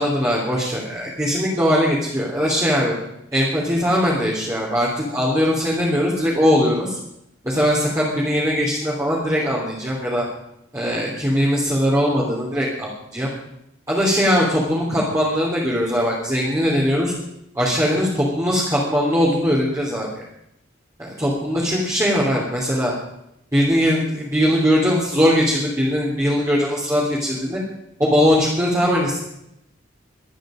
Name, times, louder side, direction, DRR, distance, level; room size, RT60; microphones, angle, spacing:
voice 1, 0.0-2.9 3.3-7.0 7.4-10.2 10.7-13.3 13.9-17.1 17.5-20.2 21.0-22.9 23.5-27.6 28.0-29.2, equal, 15° right, -6 dB, 3.2 m, -20 dB
23.5 x 9.3 x 5.1 m, 0.80 s
head